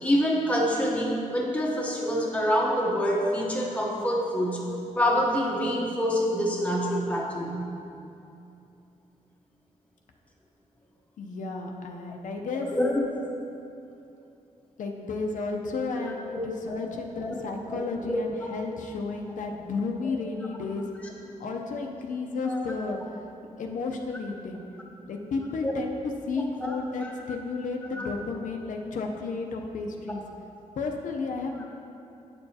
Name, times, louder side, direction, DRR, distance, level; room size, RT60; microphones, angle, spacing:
voice 1, 0.0-7.7 12.7-13.0 15.9-16.5 17.3-17.4 17.7-18.2 22.4-22.6 25.6-25.7 26.6-27.1 27.8-28.1, equal, 10° left, -3 dB, 0.8 m, -27 dB
voice 2, 11.2-12.7 14.8-20.8 21.4-23.0 23.6-24.6 25.1-25.9 26.3-30.2 30.7-31.6, left 4 dB, 80° left, 2 dB, 0.6 m, -32 dB
8.8 x 6.7 x 2.8 m, 2.7 s
wide cardioid pair, 170°, 13 cm